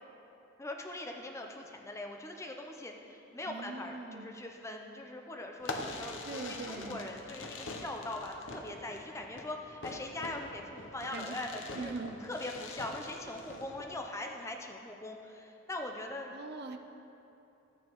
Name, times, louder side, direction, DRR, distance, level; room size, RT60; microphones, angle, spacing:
voice 1, 0.6-11.9 12.2-16.3, left 2 dB, 15° left, 2 dB, 0.5 m, -41 dB
voice 2, 3.4-4.3 6.2-7.0 11.1-11.3 11.8-12.2 16.3-16.8, right 3 dB, 50° right, 6 dB, 0.5 m, -41 dB
Fireworks, 5.6-14.0, left 2 dB, 60° left, 0.8 m, -44 dB
12.5 x 9.5 x 3.0 m, 2.9 s
head